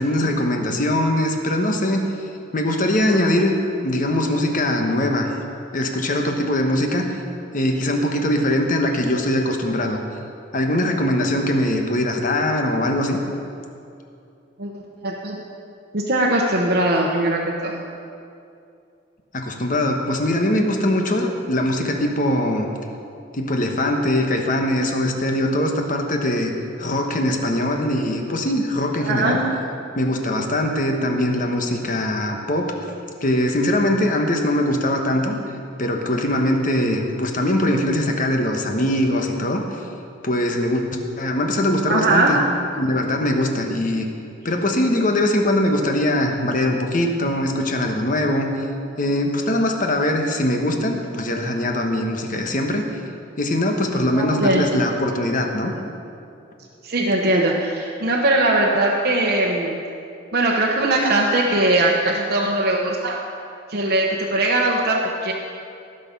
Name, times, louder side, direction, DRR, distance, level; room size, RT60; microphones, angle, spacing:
voice 1, 0.0-2.1 2.5-3.5 3.8-5.3 5.7-7.1 7.5-10.0 10.5-13.2 19.3-22.7 23.3-26.5 26.8-29.4 30.0-32.7 33.2-35.4 35.8-39.6 40.2-42.4 42.8-44.1 44.4-48.5 49.0-52.8 53.4-55.7, left 1 dB, 45° left, 3 dB, 1.2 m, -21 dB
voice 2, 14.6-15.4 15.9-17.8 29.0-29.4 41.9-42.4 54.1-54.7 56.8-59.8 60.3-63.2 63.7-65.3, right 2 dB, 55° right, -3 dB, 1.1 m, -20 dB
18.5 x 6.6 x 5.4 m, 2.5 s
head